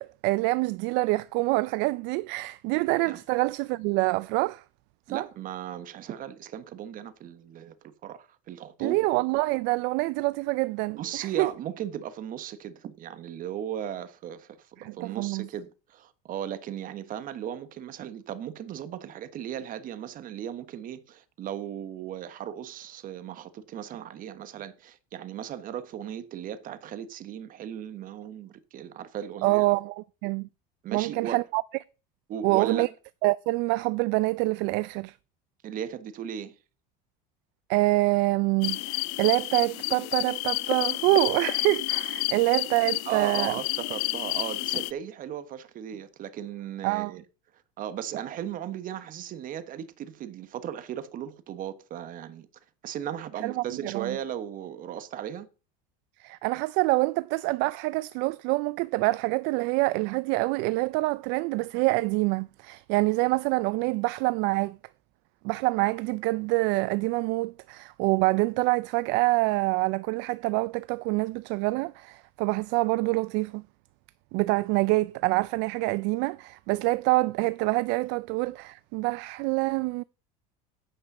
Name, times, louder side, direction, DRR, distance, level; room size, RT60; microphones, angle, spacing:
voice 1, 0.0-4.6 5.1-5.2 8.8-11.5 14.8-15.5 29.4-30.5 30.9-31.6 32.4-32.9 33.2-35.2 37.7-43.6 46.8-47.1 53.4-54.2 56.2-64.8 65.4-73.6 74.3-80.0, right 22 dB, 65° right, 0.4 m, -26 dB
voice 2, 5.1-9.1 10.9-14.7 14.9-29.7 30.8-31.4 32.3-32.9 35.6-36.6 43.0-47.2 47.8-52.5 52.8-55.5 74.7-74.9, right 10 dB, 45° right, 1.2 m, -37 dB
sound 1, 38.6-44.9, left 22 dB, 70° left, 0.5 m, -30 dB
9.8 x 5.4 x 6.6 m
supercardioid pair, 115°, 20 cm